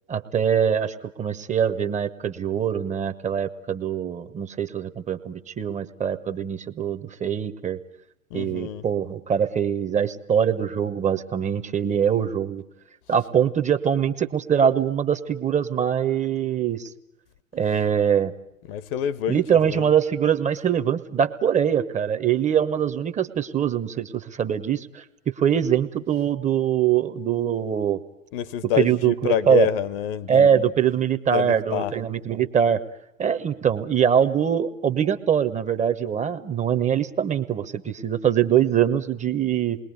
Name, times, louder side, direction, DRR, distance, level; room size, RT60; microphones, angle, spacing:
voice 1, 0.1-7.8 8.3-12.6 13.1-16.9 17.5-18.3 19.3-28.0 28.6-29.7 30.3-32.8 33.2-39.8, right 8 dB, 20° right, 1.2 m, -23 dB
voice 2, 8.3-8.8 18.7-19.9 28.3-30.5 31.3-31.9, left 9 dB, 45° left, 1.1 m, -27 dB
28.5 x 21.5 x 9.5 m
figure-of-eight pair, 95°, 40 cm